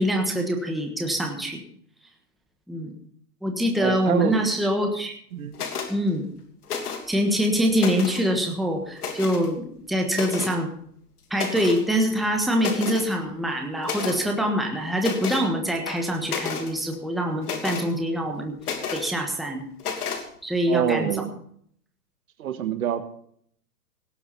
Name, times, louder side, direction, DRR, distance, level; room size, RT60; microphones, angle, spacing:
voice 1, 0.0-1.6 2.7-2.9 3.4-5.1 5.9-6.2 7.1-10.7 11.3-18.5 18.9-19.6 20.4-21.1, equal, ahead, 1 dB, 1.4 m, -24 dB
voice 2, 3.8-4.6 5.3-5.6 20.7-21.4 22.4-23.0, right 9 dB, 55° right, 11 dB, 1.5 m, -26 dB
sound 1, 5.5-5.9 6.6-7.2 7.6-8.3 9.0-9.5 10.1-10.6 11.3-11.8 12.2-12.3 12.6-13.1 13.8-14.2 15.0-15.5 15.9-16.7 17.4-17.9 18.6-19.1 19.8-20.2, left 6 dB, 65° left, 3.0 m, -31 dB
18.0 x 8.1 x 5.7 m, 0.63 s
hypercardioid pair, 140°, 49 cm